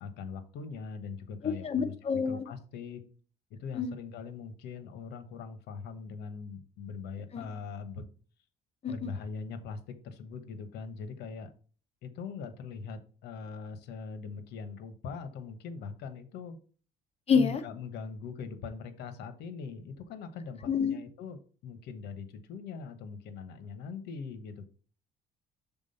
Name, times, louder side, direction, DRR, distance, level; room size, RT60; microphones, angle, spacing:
voice 1, 0.0-1.9 2.3-3.0 3.5-8.1 8.9-11.5 12.0-16.6 17.3-21.4 21.6-24.7, left 5 dB, 80° left, 11 dB, 1.2 m, -41 dB
voice 2, 1.4-2.4 3.8-3.9 7.3-7.5 8.8-9.1 17.3-17.6 20.6-21.0, left 6 dB, 35° left, 9 dB, 1.0 m, -28 dB
6.1 x 4.0 x 5.5 m, 0.39 s
cardioid pair, 110°, 17 cm